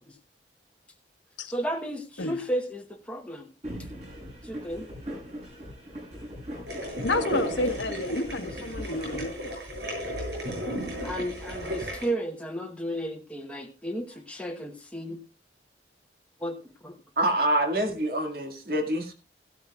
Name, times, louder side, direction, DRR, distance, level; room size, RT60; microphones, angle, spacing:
voice 1, 1.5-3.5 4.4-4.8 9.1-9.2 11.0-15.2 16.4-16.6 16.8-16.9, right 1 dB, 5° left, 1.1 m, -33 dB
sound 1, 3.6-9.3, equal, 35° right, 7.9 m, -41 dB
sound 2, 6.7-12.1, equal, 75° right, 7.4 m, -34 dB
voice 2, 7.0-9.6, left 2 dB, 85° left, 1.2 m, -30 dB
voice 3, 17.2-19.1, right 1 dB, 55° right, 2.2 m, -26 dB
16.0 x 12.5 x 2.4 m
head